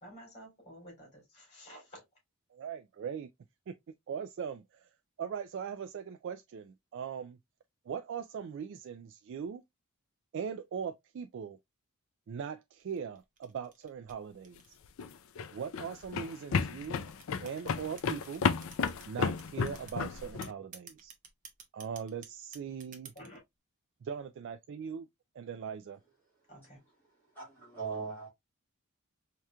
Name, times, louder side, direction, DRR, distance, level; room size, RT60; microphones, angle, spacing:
voice 1, 0.0-2.0 23.1-23.4 26.5-26.8, equal, 30° left, 2.9 m, -51 dB
voice 2, 2.5-3.3 3.7-3.8 4.1-4.9 5.2-7.4 7.9-9.6 10.3-11.6 12.3-14.8 15.5-17.0 17.4-18.5 19.1-21.1 21.7-23.1 24.0-25.1 25.4-26.0, right 7 dB, 55° right, 0.3 m, -40 dB
sound 1, 12.8-15.3 15.9-19.1 19.4-20.0 20.4-23.4, right 6 dB, 35° right, 0.8 m, -52 dB
sound 2, 14.8-20.5, left 5 dB, 65° left, 0.4 m, -33 dB
voice 3, 27.3-28.3, right 5 dB, 10° left, 1.8 m, -39 dB
4.8 x 2.9 x 2.2 m
head